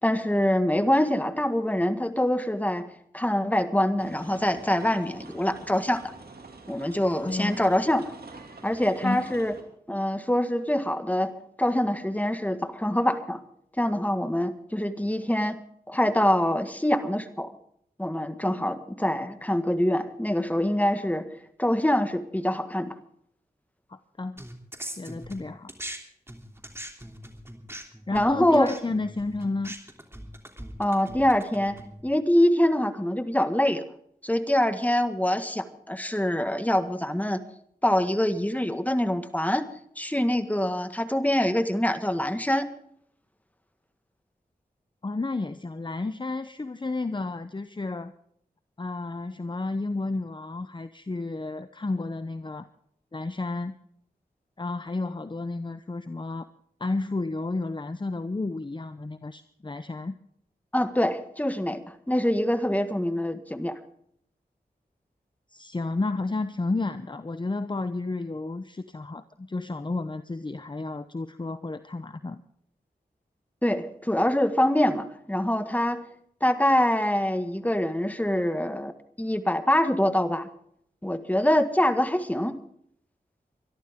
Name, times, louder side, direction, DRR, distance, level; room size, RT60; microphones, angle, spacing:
voice 1, 0.0-2.9 3.1-6.1 6.7-8.1 8.6-9.5 9.9-11.3 11.6-13.4 13.8-15.6 15.9-17.5 18.0-21.3 21.6-22.9 28.1-28.7 30.8-31.8 32.0-33.8 34.2-37.4 37.8-39.6 40.0-42.7 60.7-63.8 73.6-76.0 76.4-78.9 79.2-80.5 81.0-82.6, left 1 dB, 10° left, 9 dB, 1.7 m, -24 dB
sound 1, 4.0-9.6, right 3 dB, 75° right, 2.6 m, -46 dB
voice 2, 7.2-7.6 9.0-9.3 23.9-24.4 24.9-25.7 28.1-29.7 45.0-48.1 48.8-52.7 53.1-53.7 54.6-56.5 56.8-60.2 65.5-72.4, left 3 dB, 30° left, 11 dB, 0.8 m, -31 dB
sound 2, 24.4-26.0 26.3-32.0, right 1 dB, 15° right, 3.1 m, -41 dB
23.5 x 12.5 x 3.7 m, 0.67 s
cardioid pair, 55°, 16 cm